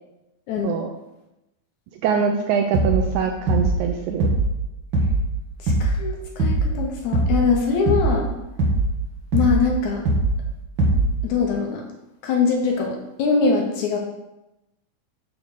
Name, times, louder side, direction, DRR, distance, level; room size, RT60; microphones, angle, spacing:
voice 1, 2.0-4.3, right 6 dB, 80° right, 4 dB, 1.8 m, -23 dB
sound 1, 2.7-3.1 3.5-3.8 4.2-4.6 4.9-5.3 5.7-6.0 6.4-6.8 7.1-7.5 7.9-8.2 8.6-9.0 9.3-9.7 10.1-10.4 10.8-11.2, right 2 dB, 60° right, 1.2 m, -20 dB
voice 2, 5.6-8.3 9.3-10.0 11.2-11.9 12.2-14.0, left 5 dB, 70° left, 1 dB, 2.1 m, -22 dB
7.2 x 3.6 x 6.4 m, 0.92 s
omnidirectional pair, 3.9 m